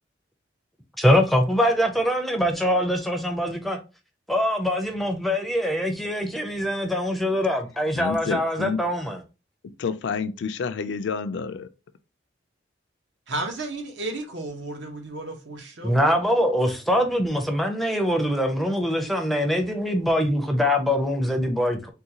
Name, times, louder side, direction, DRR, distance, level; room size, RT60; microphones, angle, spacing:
voice 1, 1.0-3.8 4.3-9.2 15.8-21.9, equal, ahead, 0.5 m, -23 dB
voice 2, 7.9-8.8 9.8-11.7, left 5 dB, 65° left, 0.3 m, -29 dB
voice 3, 13.3-16.2, right 2 dB, 70° right, 0.8 m, -33 dB
3.7 x 2.2 x 2.8 m
head